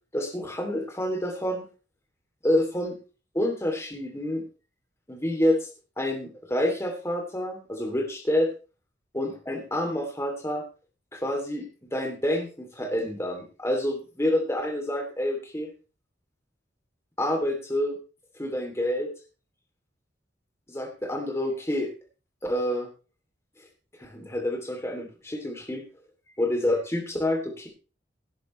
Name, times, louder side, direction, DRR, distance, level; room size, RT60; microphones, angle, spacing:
voice 1, 0.1-1.6 2.4-3.0 3.3-4.4 5.1-5.7 6.0-8.5 9.1-10.6 11.1-11.7 11.9-15.7 17.2-17.9 18.3-19.1 20.7-21.9 22.4-22.9 24.0-25.8 26.4-27.7, left 1 dB, 15° left, 2 dB, 3.0 m, -28 dB
18.0 x 10.0 x 3.3 m, 0.34 s
head